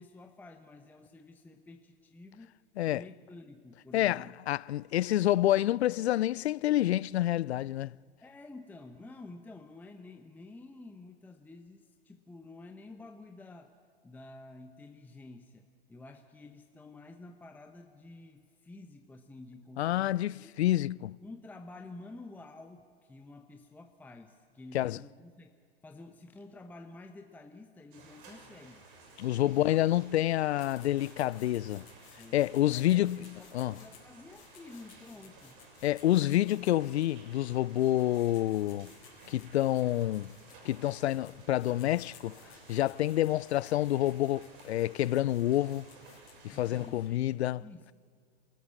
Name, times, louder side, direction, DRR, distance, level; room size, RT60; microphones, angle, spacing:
voice 1, 0.0-2.6 2.9-4.3 8.2-13.7 14.0-20.5 21.2-25.5 25.8-28.8 29.4-29.8 32.2-35.6 46.5-47.9, left 2 dB, 5° left, 0.8 m, -50 dB
voice 2, 3.9-7.9 19.8-21.2 24.7-25.0 29.2-31.8 32.3-33.7 35.8-38.9 39.3-40.3 40.7-42.3 42.7-45.9 46.4-47.6, left 14 dB, 80° left, 0.5 m, -28 dB
sound 1, 27.9-46.9, right 3 dB, 55° right, 6.4 m, -55 dB
sound 2, 30.6-47.3, left 10 dB, 40° left, 4.1 m, -60 dB
28.5 x 14.0 x 8.5 m
hypercardioid pair, 120°, 32 cm